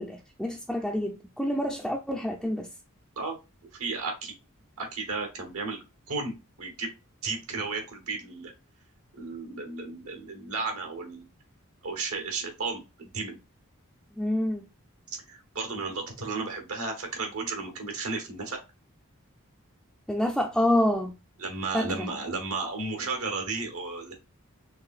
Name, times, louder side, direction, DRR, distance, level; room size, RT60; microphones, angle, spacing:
voice 1, 0.0-2.7 14.2-14.6 20.1-21.1 21.7-22.1, left 1 dB, ahead, 0.4 m, -27 dB
voice 2, 3.8-4.3 4.8-5.8 6.1-6.9 7.2-8.5 9.1-11.3 11.8-13.4 15.1-18.6 21.4-24.1, right 3 dB, 80° right, 1.4 m, -33 dB
4.7 x 3.3 x 2.4 m
head